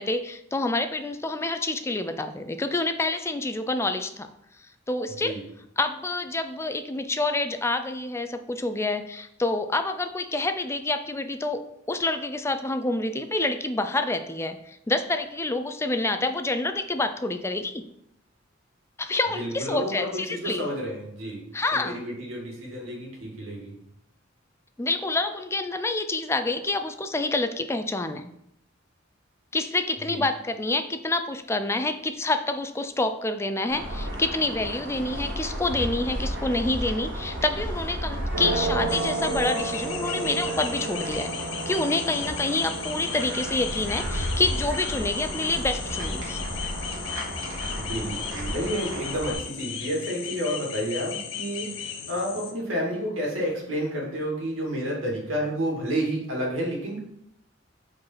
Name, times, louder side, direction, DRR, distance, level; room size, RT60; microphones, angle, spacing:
voice 1, 0.0-4.3 4.9-5.4 5.8-11.6 11.9-17.8 19.0-20.7 21.5-22.0 24.8-28.3 29.5-41.3 41.7-46.4, left 2 dB, 15° left, 8 dB, 0.4 m, -27 dB
voice 2, 19.3-21.4 21.7-23.7 30.0-30.2 47.7-51.7 52.1-57.0, equal, 80° right, -2 dB, 2.4 m, -30 dB
sound 1, 33.7-49.3, right 1 dB, 65° right, 1.8 m, -32 dB
sound 2, 38.9-52.5, left 7 dB, 70° left, 0.8 m, -36 dB
4.7 x 4.7 x 5.7 m, 0.77 s
head